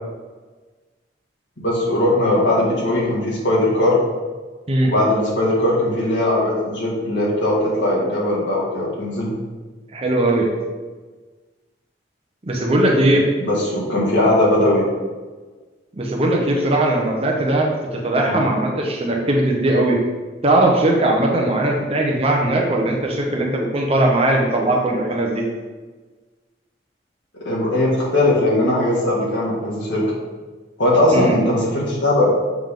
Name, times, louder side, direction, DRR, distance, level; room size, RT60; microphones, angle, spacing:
voice 1, 1.6-4.0 4.8-9.3 13.4-14.8 18.3-18.4 27.5-30.1 30.8-32.3, left 1 dB, 80° left, -5 dB, 1.8 m, -19 dB
voice 2, 9.9-10.5 12.4-13.3 15.9-20.0 20.4-25.4 31.1-31.3, right 1 dB, 30° right, 0 dB, 0.8 m, -19 dB
7.4 x 3.5 x 3.7 m, 1.4 s
head